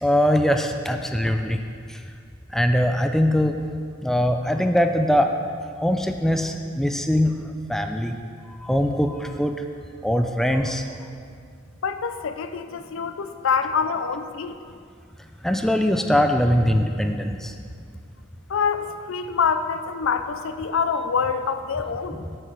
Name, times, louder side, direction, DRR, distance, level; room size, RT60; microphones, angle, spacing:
voice 1, 0.0-1.6 1.9-2.0 2.5-3.6 4.0-5.3 5.8-7.4 7.7-8.2 8.6-9.6 10.0-11.0 15.4-17.5 22.2-22.4, equal, ahead, 5 dB, 0.4 m, -22 dB
voice 2, 11.8-14.6 18.5-22.3, left 6 dB, 70° left, 9 dB, 0.5 m, -25 dB
7.8 x 7.6 x 4.6 m, 2.2 s
head